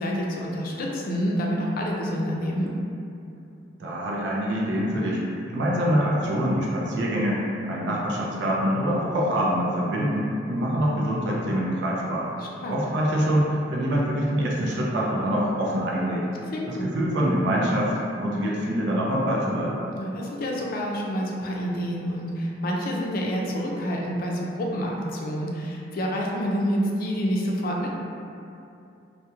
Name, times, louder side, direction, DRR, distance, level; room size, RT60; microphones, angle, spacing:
voice 1, 0.0-2.7 12.4-12.8 16.5-16.9 19.9-27.9, equal, 55° left, -2 dB, 0.4 m, -28 dB
voice 2, 3.8-5.2 5.5-12.3 12.7-16.3 16.7-17.9 18.2-19.8, equal, 85° right, -4 dB, 0.4 m, -25 dB
2.8 x 2.0 x 2.3 m, 2.6 s
head